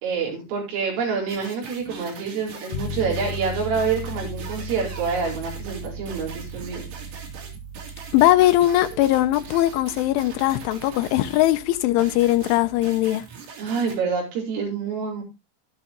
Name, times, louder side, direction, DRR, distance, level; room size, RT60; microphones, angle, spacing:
voice 1, 0.0-6.9 13.6-15.2, right 5 dB, 85° right, 7.5 m, -27 dB
sound 1, 1.3-11.6 12.0-14.0, right 5 dB, 60° right, 4.7 m, -42 dB
sound 2, 2.7-12.8, equal, 60° left, 1.8 m, -37 dB
voice 2, 8.1-13.2, left 15 dB, 80° left, 3.2 m, -20 dB
13.0 x 12.5 x 3.0 m
omnidirectional pair, 5.7 m